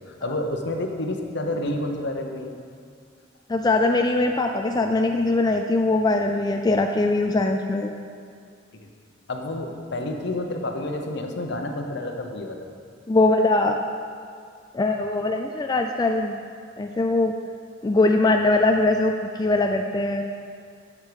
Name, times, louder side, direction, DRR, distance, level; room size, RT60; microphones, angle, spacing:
voice 1, 0.1-2.5 8.8-8.9 9.3-12.6, left 1 dB, 60° left, 3 dB, 0.9 m, -29 dB
voice 2, 3.5-7.9 13.1-13.8 14.7-16.4 16.8-17.3 17.8-19.1 19.4-20.2, left 2 dB, 20° left, 4 dB, 0.3 m, -21 dB
8.1 x 7.4 x 5.2 m, 2.2 s
head